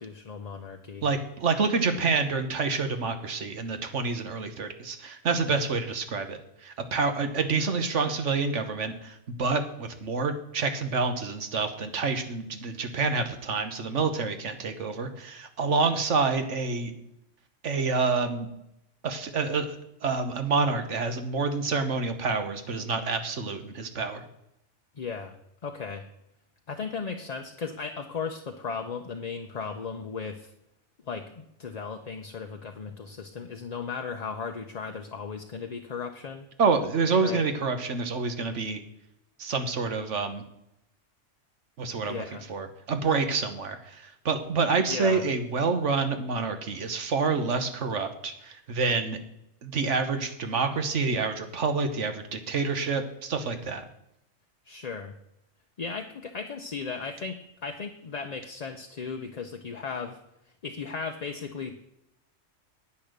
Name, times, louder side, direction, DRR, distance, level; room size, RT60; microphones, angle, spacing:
voice 1, 0.0-1.1 25.0-25.4 25.6-26.1 26.7-30.5 31.1-36.5 37.2-37.5 42.1-42.4 44.9-45.2 54.6-55.1 55.8-60.2 60.6-61.8, left 5 dB, 40° left, 4 dB, 0.7 m, -36 dB
voice 2, 1.0-16.9 17.6-18.5 19.0-24.2 36.6-38.8 39.4-40.4 41.8-42.2 42.5-49.2 49.6-53.8, right 4 dB, 70° right, 8 dB, 1.5 m, -28 dB
10.0 x 8.9 x 6.6 m, 0.82 s
omnidirectional pair, 1.3 m